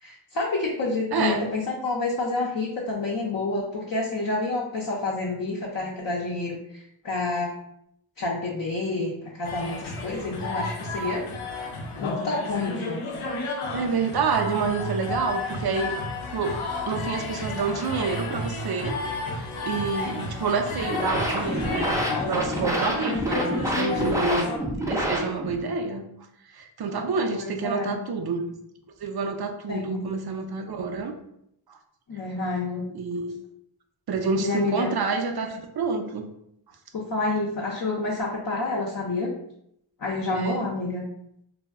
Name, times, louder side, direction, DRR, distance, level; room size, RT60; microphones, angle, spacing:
voice 1, 0.0-7.5 8.2-11.2 12.0-13.0 17.3-17.4 23.0-23.2 27.3-27.9 29.7-30.0 32.1-32.9 34.4-34.9 36.9-39.3 40.0-41.0, left 3 dB, 45° left, -3 dB, 0.6 m, -29 dB
voice 2, 1.1-1.5 13.7-15.9 16.3-16.6 16.9-19.0 19.6-22.0 22.3-24.5 24.9-26.0 26.5-28.5 29.0-31.1 31.7-31.8 32.9-33.4 34.1-36.2 40.3-40.7, right 4 dB, 55° right, 5 dB, 0.5 m, -28 dB
sound 1, 9.4-24.6, left 3 dB, 90° left, 0.6 m, -32 dB
sound 2, 20.7-25.7, equal, 5° right, 0.5 m, -28 dB
2.2 x 2.0 x 3.4 m, 0.75 s
cardioid pair, 50°, 48 cm